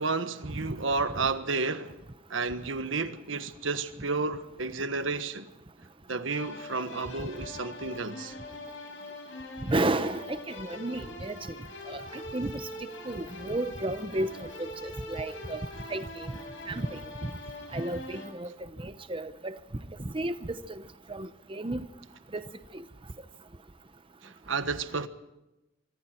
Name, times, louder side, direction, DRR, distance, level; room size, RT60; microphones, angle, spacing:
voice 1, 0.0-2.0 2.3-5.5 6.1-8.3 24.2-25.1, right 4 dB, 85° right, 1.5 m, -31 dB
sound 1, 6.3-18.3, left 2 dB, 75° left, 6.5 m, -43 dB
voice 2, 9.7-11.4 11.9-12.7 13.1-15.6 15.9-16.3 16.7-17.3 17.7-18.5 18.8-19.6 20.0-20.3 20.7-20.8 21.1-21.8 22.3-22.4 22.7-22.8, right 2 dB, 25° right, 0.8 m, -32 dB
25.0 x 24.5 x 4.5 m
head